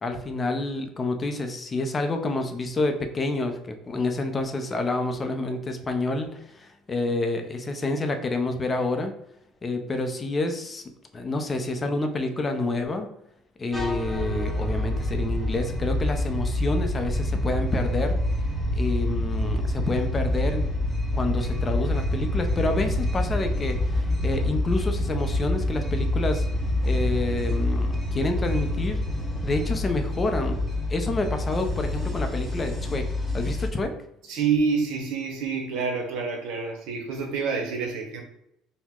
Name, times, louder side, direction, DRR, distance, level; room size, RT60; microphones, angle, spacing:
voice 1, 0.0-9.1 9.6-10.8 11.1-13.1 13.6-18.2 18.7-20.8 21.1-26.5 26.8-29.0 29.4-30.6 30.9-33.1 33.3-33.9, left 2 dB, 25° left, 5 dB, 0.5 m, -28 dB
sound 1, 13.7-33.7, left 1 dB, 5° left, 1.0 m, -27 dB
voice 2, 34.3-38.2, right 5 dB, 75° right, 2 dB, 0.7 m, -27 dB
2.8 x 2.1 x 3.5 m, 0.79 s
supercardioid pair, 95°, 0 cm